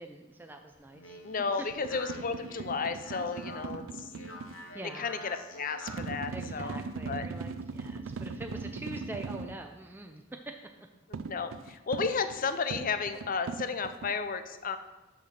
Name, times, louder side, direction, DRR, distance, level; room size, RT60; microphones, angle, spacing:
voice 1, 0.0-1.7 4.7-5.1 6.3-10.4, right 1 dB, 10° right, 3 dB, 0.5 m, -44 dB
Speech, 0.8-6.2, left 1 dB, 80° left, 1.6 m, -48 dB
voice 2, 1.2-3.8 5.0-6.8 7.1-7.3 11.2-14.8, left 5 dB, 45° left, 10 dB, 0.6 m, -33 dB
sound 1, 1.7-4.6 5.9-9.6 11.1-14.1, right 4 dB, 80° right, 0.4 m, -39 dB
6.9 x 5.9 x 6.4 m, 1.1 s
head